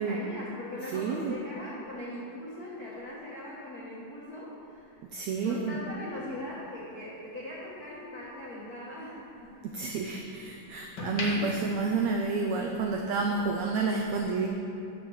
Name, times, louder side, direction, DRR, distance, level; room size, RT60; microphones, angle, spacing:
voice 1, 0.0-5.0 5.4-9.5, left 1 dB, 85° left, -6 dB, 0.8 m, -40 dB
voice 2, 0.9-1.3 5.1-5.8 9.6-14.5, right 4 dB, 90° right, 2 dB, 1.5 m, -30 dB
sound 1, 6.1-8.5 8.9-10.3 10.7-12.9 13.2-13.4, left 2 dB, 55° left, 1.2 m, -39 dB
11.5 x 5.1 x 7.2 m, 2.8 s
omnidirectional pair, 3.9 m